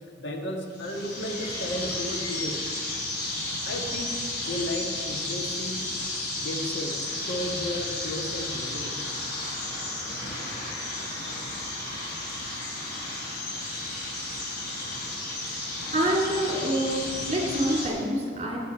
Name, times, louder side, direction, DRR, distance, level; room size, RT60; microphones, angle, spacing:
voice 1, 0.2-2.6 3.6-5.9 6.4-9.0, left 1 dB, 75° left, 1 dB, 1.8 m, -34 dB
sound 1, 0.7-17.9, left 2 dB, 60° left, 3.5 m, -33 dB
voice 2, 15.9-18.6, right 1 dB, 35° right, -2 dB, 2.8 m, -26 dB
17.5 x 8.6 x 4.5 m, 2.3 s
head